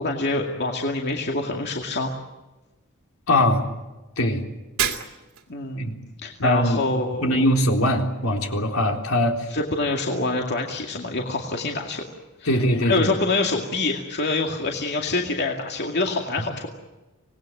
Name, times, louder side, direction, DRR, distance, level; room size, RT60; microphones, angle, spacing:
voice 1, 0.0-2.1 5.5-5.9 6.2-7.4 9.5-12.0 12.4-12.5 12.8-16.7, left 3 dB, 50° left, 1 dB, 2.3 m, -26 dB
voice 2, 3.3-3.6 4.2-4.4 5.8-6.0 6.4-6.8 7.2-9.5 12.5-13.1, left 1 dB, 75° left, 2 dB, 3.8 m, -21 dB
Shatter, 4.8-5.6, right 9 dB, 75° right, 2.6 m, -27 dB
26.0 x 19.5 x 9.1 m, 1.1 s
head